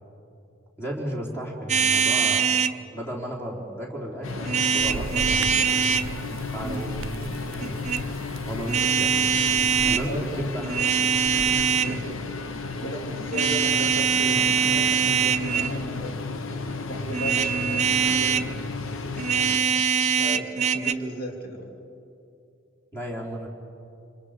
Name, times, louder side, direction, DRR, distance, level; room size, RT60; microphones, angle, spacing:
voice 1, 0.8-2.5 2.9-5.6 6.5-7.2 7.5-7.8 8.4-9.1 9.8-10.9 11.8-12.0 15.5-15.7 22.9-23.5, right 1 dB, 10° left, -2 dB, 3.7 m, -34 dB
sound 1, 1.7-2.8 4.5-6.1 7.6-8.0 8.7-10.0 10.6-12.0 13.3-15.8 17.1-18.5 19.2-20.9, right 6 dB, 35° right, 0.6 m, -23 dB
sound 2, 4.2-19.6, left 3 dB, 80° left, 1.1 m, -33 dB
sound 3, 4.8-11.7, right 4 dB, 85° right, 0.5 m, -39 dB
voice 2, 9.8-10.4 11.8-12.2 12.8-16.2 16.9-18.5 19.5-21.7, right 1 dB, 45° left, 0 dB, 3.0 m, -36 dB
27.0 x 26.0 x 5.0 m, 2.7 s
head